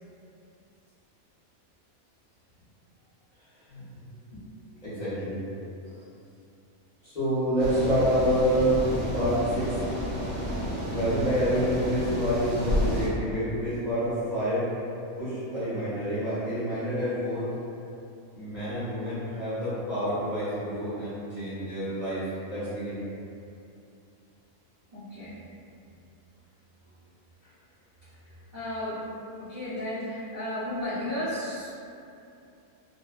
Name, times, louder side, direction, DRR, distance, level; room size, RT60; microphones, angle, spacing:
voice 1, 3.7-4.0 4.3-4.4 4.8-5.4 5.8-6.0 7.0-8.8 9.1-9.8 10.9-14.7 15.2-17.5 18.3-23.0, equal, 40° left, -15 dB, 0.7 m, -28 dB
sound 1, 7.6-13.1, equal, 70° right, 1.0 m, -31 dB
voice 2, 24.9-25.4 27.4-27.5 28.2-29.0 29.4-31.7, left 1 dB, 45° right, -15 dB, 0.7 m, -34 dB
2.6 x 2.1 x 2.3 m, 2.6 s
omnidirectional pair, 1.5 m